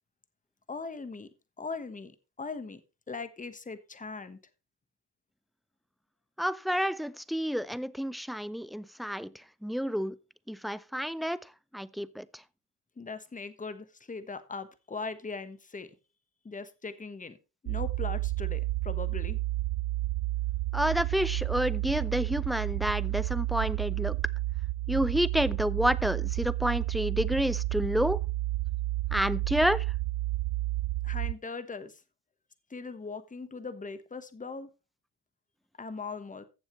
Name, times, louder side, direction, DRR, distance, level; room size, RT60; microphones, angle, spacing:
voice 1, 0.7-1.3 1.6-2.8 3.1-4.4 13.0-15.9 16.4-17.4 17.6-19.4 31.0-32.0 32.7-34.7 35.8-36.4, left 4 dB, 15° left, 1.2 m, -40 dB
voice 2, 6.4-9.3 9.6-10.2 10.5-11.4 11.7-12.2 20.7-24.2 24.9-28.2 29.1-29.8, equal, ahead, 0.4 m, -29 dB
sound 1, 17.7-31.3, right 18 dB, 80° right, 0.5 m, -31 dB
15.5 x 7.2 x 3.1 m
supercardioid pair, 80°, 46 cm